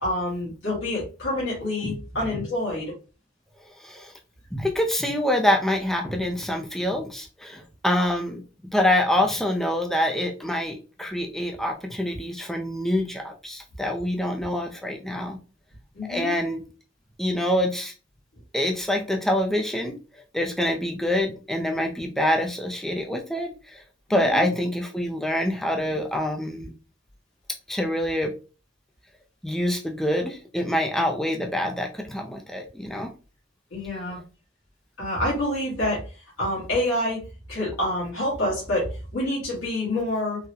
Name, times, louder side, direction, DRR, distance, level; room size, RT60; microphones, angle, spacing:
voice 1, 0.0-2.9 15.9-16.3 24.1-24.4 33.7-34.2 35.0-37.2 37.5-40.5, left 1 dB, 75° left, -6 dB, 1.6 m, -27 dB
voice 2, 3.8-4.1 4.5-8.4 8.7-15.4 16.1-16.6 17.2-17.9 18.5-23.8 24.1-26.7 27.7-28.3 29.4-33.1, left 1 dB, ahead, 2 dB, 0.4 m, -26 dB
3.7 x 2.1 x 2.7 m, 0.33 s
head